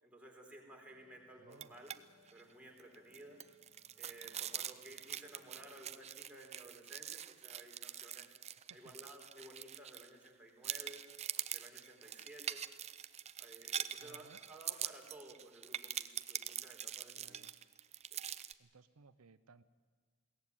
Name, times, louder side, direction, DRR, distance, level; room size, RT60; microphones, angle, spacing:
voice 1, 0.0-1.9 2.3-3.4 4.0-8.3 8.7-11.0 11.5-12.7 13.4-17.4 18.1-18.2, right 1 dB, 5° right, -1 dB, 4.0 m, -56 dB
sound 1, 0.9-8.1, left 3 dB, 20° left, 1.9 m, -72 dB
voice 2, 1.4-1.8 8.8-8.9 14.0-14.4 17.2-17.5 18.6-19.6, right 4 dB, 80° right, 13 dB, 0.7 m, -61 dB
sound 2, 1.5-2.0 2.3-2.4 2.8-10.3 10.6-18.5, right 10 dB, 30° right, 0.6 m, -44 dB
22.0 x 17.0 x 9.7 m, 1.5 s
head